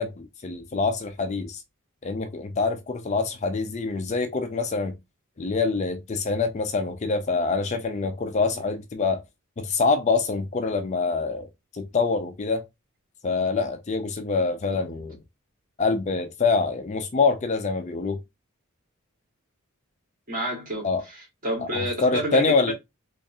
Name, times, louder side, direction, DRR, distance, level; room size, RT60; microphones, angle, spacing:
voice 1, 0.0-1.6 2.0-5.0 5.4-9.2 9.6-11.5 11.7-12.6 13.2-15.2 15.8-18.2 20.8-21.0 21.7-22.7, left 4 dB, 30° left, 0.4 m, -25 dB
voice 2, 14.7-15.0 20.3-22.7, equal, 40° right, 2.0 m, -30 dB
3.5 x 3.1 x 2.6 m
head